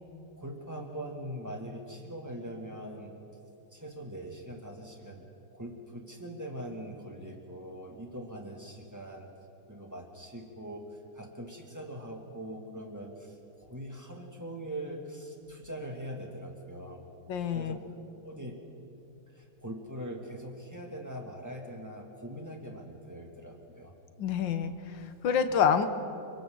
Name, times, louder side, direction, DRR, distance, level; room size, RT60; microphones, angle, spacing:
voice 1, 0.4-3.2 3.7-9.3 9.7-17.0 17.5-17.8 18.2-18.6 19.3-23.9, right 1 dB, 10° right, 0 dB, 2.2 m, -42 dB
voice 2, 17.3-17.8 24.2-25.9, left 7 dB, 65° left, 10 dB, 1.6 m, -27 dB
29.0 x 23.5 x 4.0 m, 2.7 s
omnidirectional pair, 2.4 m